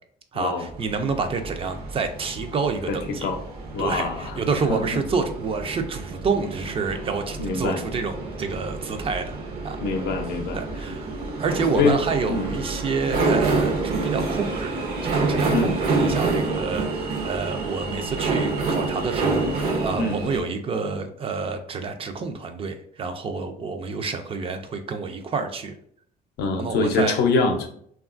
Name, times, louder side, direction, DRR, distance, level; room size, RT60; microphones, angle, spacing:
voice 1, 0.3-3.3 3.8-9.8 10.5-11.1 11.4-25.7 26.5-27.1, right 4 dB, 35° right, 7 dB, 0.3 m, -28 dB
sound 1, 0.7-20.4, right 3 dB, 70° right, 0.7 m, -28 dB
voice 2, 2.9-3.4 3.7-4.3 4.7-4.8 7.4-7.8 9.8-10.6 11.7-12.0 12.3-12.5 15.5-15.7 20.0-20.2 26.4-27.7, left 3 dB, 75° left, 4 dB, 0.6 m, -24 dB
3.0 x 2.3 x 2.4 m, 0.64 s
cardioid pair, 110°, 17 cm